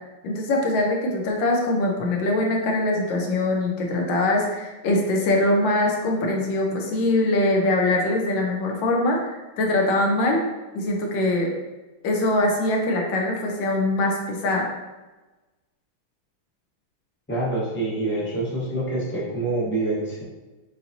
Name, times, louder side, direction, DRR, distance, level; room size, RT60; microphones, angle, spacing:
voice 1, 0.2-10.4 10.7-11.5 12.0-14.7, left 2 dB, 70° left, 0 dB, 1.3 m, -22 dB
voice 2, 17.3-20.2, right 2 dB, 15° left, -7 dB, 0.4 m, -26 dB
5.8 x 2.6 x 2.6 m, 1.2 s
omnidirectional pair, 2.4 m